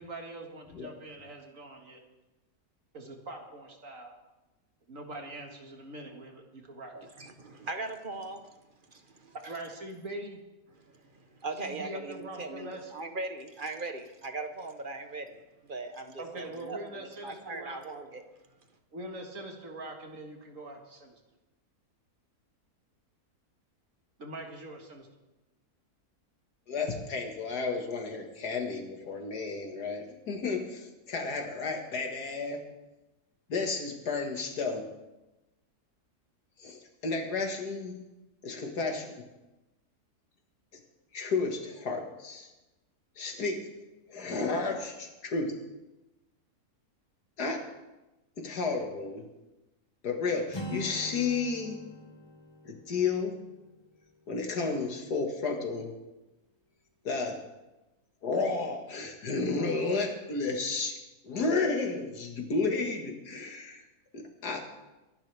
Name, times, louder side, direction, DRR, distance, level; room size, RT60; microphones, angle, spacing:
voice 1, 0.0-2.0 2.9-4.1 4.9-6.9 9.4-10.4 11.6-12.9 16.2-17.8 18.9-21.2 24.2-25.1, right 1 dB, 55° right, 2 dB, 2.1 m, -43 dB
voice 2, 6.9-8.4 8.9-9.3 11.4-16.8 17.2-18.2, right 3 dB, 40° right, 7 dB, 1.0 m, -39 dB
voice 3, 26.7-32.6 33.5-34.9 36.6-38.0 38.4-39.2 41.1-42.5 43.2-43.7 44.1-45.5 47.4-47.6 48.4-49.3 50.0-51.8 52.6-53.3 54.3-55.9 57.0-57.4 58.2-60.9 61.2-63.8 64.1-64.7, left 4 dB, 80° left, 3 dB, 2.3 m, -32 dB
Acoustic guitar, 50.5-54.4, equal, 25° left, 0.7 m, -44 dB
24.0 x 11.5 x 3.4 m, 1.0 s
omnidirectional pair, 1.7 m